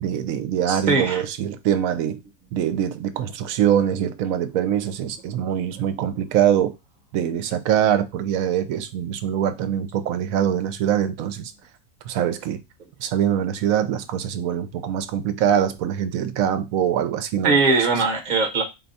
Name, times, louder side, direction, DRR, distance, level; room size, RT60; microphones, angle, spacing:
voice 1, 0.0-2.2 2.5-6.7 7.1-11.5 12.0-12.6 13.0-17.6, right 9 dB, 70° right, 1.0 m, -23 dB
voice 2, 0.7-1.2 17.4-18.6, right 3 dB, 35° right, 0.9 m, -20 dB
4.0 x 2.3 x 4.0 m
omnidirectional pair, 1.5 m